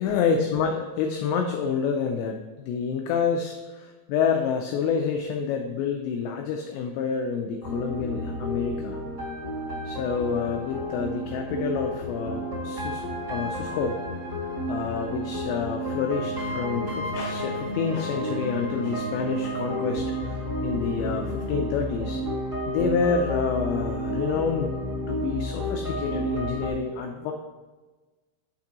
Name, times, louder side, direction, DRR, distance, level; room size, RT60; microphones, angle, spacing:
voice 1, 0.0-9.0 9.8-13.0 13.3-14.0 14.7-22.2 22.7-24.7 25.1-27.3, left 6 dB, 90° left, 3 dB, 2.5 m, -28 dB
sound 1, 7.6-26.7, equal, 40° right, 1.5 m, -31 dB
7.1 x 5.9 x 2.9 m, 1.3 s
omnidirectional pair, 5.7 m